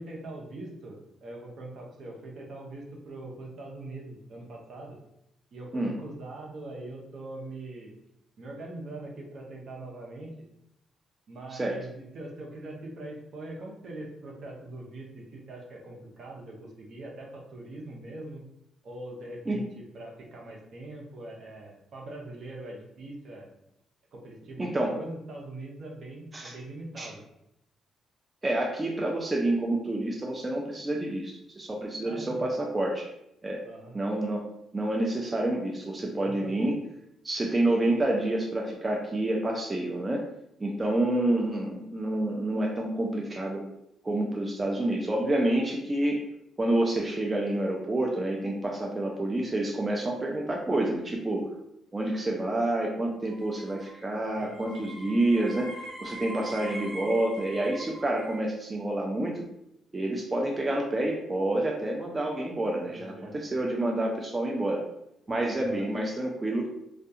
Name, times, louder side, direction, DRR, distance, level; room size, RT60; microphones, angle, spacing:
voice 1, 0.0-5.0 5.5-7.9 8.4-10.3 11.3-18.4 18.8-23.5 24.1-27.2 32.0-32.5 33.6-34.0 36.2-36.7 54.4-54.9 62.8-63.4 65.5-65.9, right 2 dB, 60° right, -1 dB, 0.6 m, -42 dB
voice 2, 24.6-25.0 26.3-26.5 27.0-27.1 28.4-33.1 33.4-33.6 33.9-34.4 34.7-36.8 37.2-40.3 40.6-43.6 44.0-46.2 46.6-51.5 51.9-59.5 59.9-64.8 65.3-66.7, right 1 dB, 25° right, 0 dB, 0.4 m, -28 dB
sound 1, 53.2-58.4, right 1 dB, ahead, 1.4 m, -43 dB
2.3 x 2.2 x 2.7 m, 0.81 s
cardioid pair, 90°, 0 cm